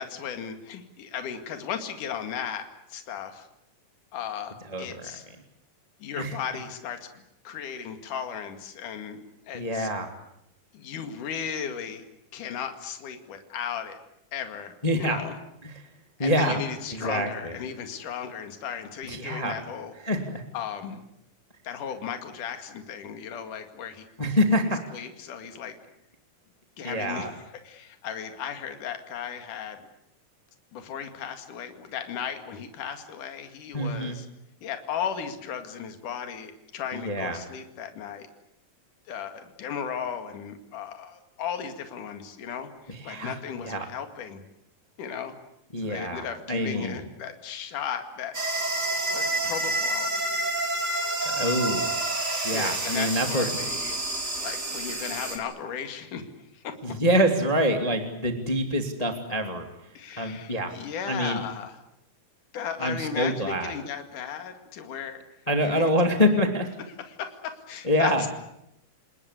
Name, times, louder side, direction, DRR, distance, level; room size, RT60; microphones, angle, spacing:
voice 1, 0.0-3.5 4.1-5.2 6.0-7.1 7.4-9.2 9.5-9.9 10.7-12.0 12.3-14.0 14.3-15.4 16.2-19.9 20.5-21.0 21.6-24.1 24.9-25.8 26.8-27.3 27.6-29.8 30.7-34.3 34.6-38.3 39.1-44.4 45.0-45.3 45.8-48.4 49.1-50.1 51.2-51.5 52.5-54.0 54.4-56.3 56.5-56.8 59.9-61.8 62.5-65.2 65.6-65.9 67.0-68.3, left 8 dB, 60° left, 7 dB, 3.5 m, -36 dB
voice 2, 4.7-5.1 6.2-6.4 9.5-10.1 14.8-15.2 15.6-15.8 16.2-16.6 16.9-17.6 19.0-19.6 20.0-20.4 24.2-24.8 26.8-27.3 33.7-34.2 36.9-37.4 42.9-43.3 43.6-43.9 45.7-47.0 51.2-51.8 52.4-53.5 56.8-59.6 60.2-60.7 61.1-61.4 62.8-63.7 65.5-66.7 67.8-68.2, equal, 10° left, 4 dB, 2.1 m, -26 dB
sound 1, 48.3-55.4, right 2 dB, 25° right, 3.9 m, -29 dB
29.0 x 20.0 x 8.3 m, 0.81 s
omnidirectional pair, 4.2 m